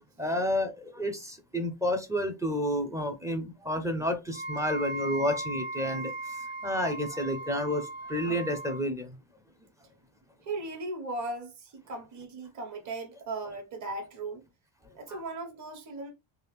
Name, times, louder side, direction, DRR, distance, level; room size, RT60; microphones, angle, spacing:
voice 1, 0.2-9.2, equal, 5° right, 0.4 m, -30 dB
Wind instrument woodwind instrument, 4.3-8.9, right 2 dB, 65° right, 0.9 m, -38 dB
voice 2, 10.4-14.4 14.9-16.1, right 2 dB, 35° right, 1.1 m, -37 dB
3.3 x 2.4 x 3.2 m
cardioid pair, 160°, 49 cm